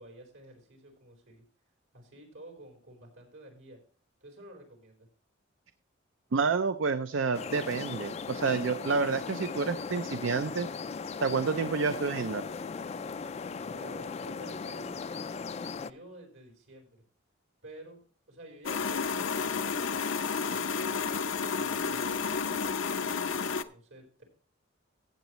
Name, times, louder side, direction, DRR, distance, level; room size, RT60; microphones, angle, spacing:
voice 1, 0.0-1.4 1.9-3.8 4.2-5.1 13.6-15.0 15.7-17.0 17.6-18.0 18.3-19.8 20.5-24.2, right 1 dB, 85° right, 2 dB, 4.3 m, -51 dB
voice 2, 6.3-10.7 11.2-12.4, right 4 dB, 70° right, 11 dB, 0.5 m, -29 dB
sound 1, 7.3-15.9, left 5 dB, 35° left, 0.3 m, -38 dB
sound 2, 18.6-23.6, left 5 dB, 75° left, 0.6 m, -31 dB
15.0 x 8.1 x 3.1 m, 0.42 s
head